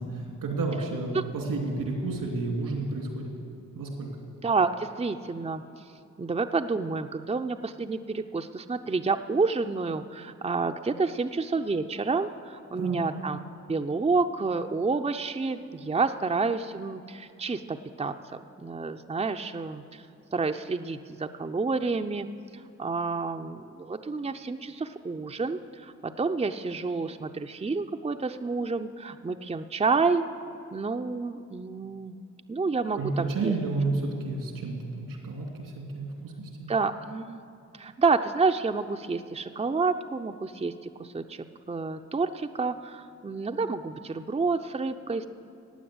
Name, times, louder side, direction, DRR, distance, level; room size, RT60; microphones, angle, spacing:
voice 1, 0.0-3.3 3.8-4.1 12.8-13.0 32.9-36.5, right 3 dB, 85° right, 1 dB, 2.7 m, -31 dB
voice 2, 4.4-5.6 6.2-13.4 13.7-20.0 20.3-22.3 22.5-30.2 30.7-32.2 32.5-33.5 36.7-37.4 37.7-45.3, right 4 dB, 20° right, 6 dB, 0.6 m, -29 dB
15.5 x 9.2 x 7.9 m, 2.6 s
supercardioid pair, 40°, 33 cm